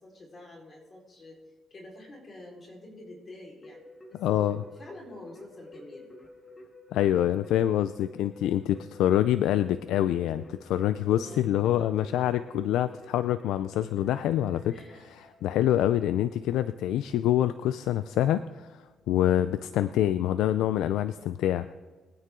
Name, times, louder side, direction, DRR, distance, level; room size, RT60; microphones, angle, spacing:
voice 1, 0.0-1.4 1.7-3.8 4.1-6.1 11.2-12.1 14.7-15.1, left 2 dB, 35° left, -1 dB, 4.4 m, -48 dB
Keyboard (musical), 3.6-16.1, left 1 dB, 20° left, 2.4 m, -50 dB
voice 2, 4.2-4.6 6.9-14.8 15.0-18.8 19.1-21.7, left 11 dB, 85° left, 12 dB, 0.4 m, -26 dB
22.5 x 9.4 x 3.8 m, 1.4 s
cardioid pair, 90°, 0 cm